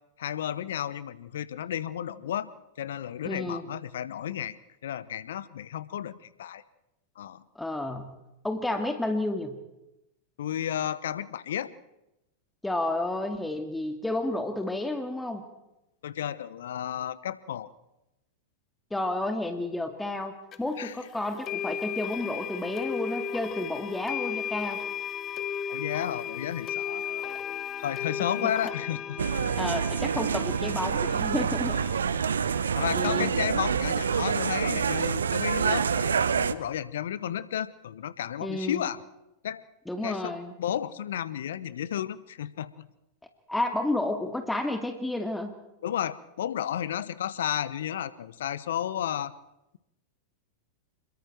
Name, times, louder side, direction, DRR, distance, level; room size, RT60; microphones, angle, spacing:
voice 1, 0.2-2.5 2.8-4.6 4.8-6.6 7.2-7.4 10.4-11.7 16.0-17.7 20.8-20.9 25.7-27.3 27.8-29.3 31.7-31.9 32.8-39.0 39.4-39.6 40.0-42.9 45.8-49.3, left 10 dB, 70° left, 17 dB, 1.0 m, -33 dB
voice 2, 3.2-3.7 7.6-8.2 8.4-9.6 12.6-15.4 18.9-24.8 28.2-28.5 29.6-31.8 32.9-33.3 38.4-38.8 39.9-40.5 43.5-45.5, left 1 dB, 5° left, 6 dB, 2.3 m, -31 dB
sound 1, 20.5-20.6 21.5-33.0, left 8 dB, 35° left, 1.3 m, -36 dB
sound 2, 29.2-36.5, right 6 dB, 80° right, 0.9 m, -27 dB
26.5 x 22.5 x 4.6 m, 0.91 s
figure-of-eight pair, 90°, 0 cm